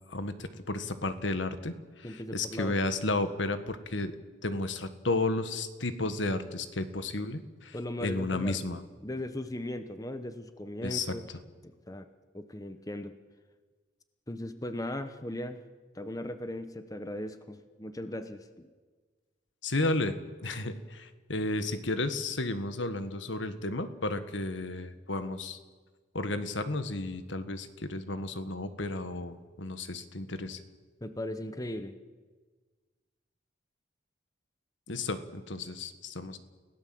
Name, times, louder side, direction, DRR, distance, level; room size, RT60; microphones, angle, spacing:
voice 1, 0.1-4.1 4.4-8.8 10.8-11.1 19.6-20.2 20.4-25.6 26.1-30.6 34.9-36.4, left 2 dB, 70° left, 10 dB, 1.6 m, -33 dB
voice 2, 2.0-2.7 7.7-8.6 9.0-11.2 11.6-12.1 12.3-13.2 14.3-15.6 15.9-18.7 31.0-32.0, left 1 dB, 20° left, 10 dB, 1.0 m, -38 dB
30.0 x 17.0 x 7.8 m, 1.4 s
head